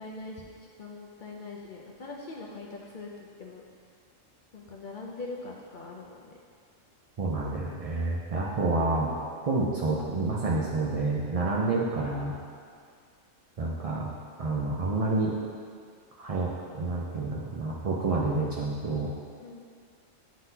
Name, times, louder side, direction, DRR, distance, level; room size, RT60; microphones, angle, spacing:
voice 1, 0.0-3.6 4.5-6.3 19.4-19.6, left 3 dB, 55° left, -3 dB, 0.5 m, -42 dB
voice 2, 7.2-9.1 9.5-12.3 13.6-14.1 14.4-15.4 16.2-19.1, right 3 dB, 55° right, -4 dB, 0.4 m, -28 dB
9.3 x 3.9 x 2.7 m, 2.1 s
omnidirectional pair, 1.4 m